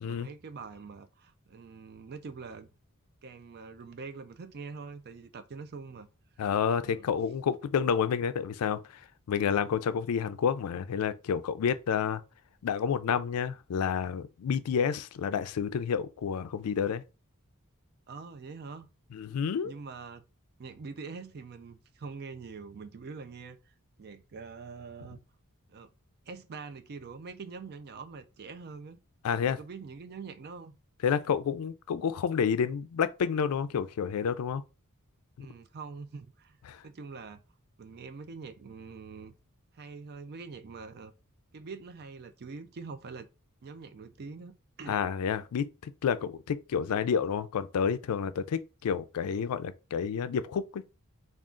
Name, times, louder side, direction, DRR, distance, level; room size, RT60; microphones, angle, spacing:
voice 1, 0.0-2.7 3.2-6.1 6.7-7.0 18.1-18.9 19.6-20.2 20.6-25.2 25.7-25.9 26.3-29.0 29.3-30.7 35.4-36.6 36.8-37.4 37.8-39.3 39.7-41.1 41.5-43.3 43.6-44.5 44.8-45.0, right 4 dB, 45° right, 0.4 m, -44 dB
voice 2, 6.4-12.2 12.6-17.0 19.1-19.7 29.2-29.6 31.0-34.6 35.4-35.5 36.7-36.8 44.9-50.8, left 7 dB, 80° left, 0.4 m, -29 dB
3.6 x 2.4 x 3.7 m
head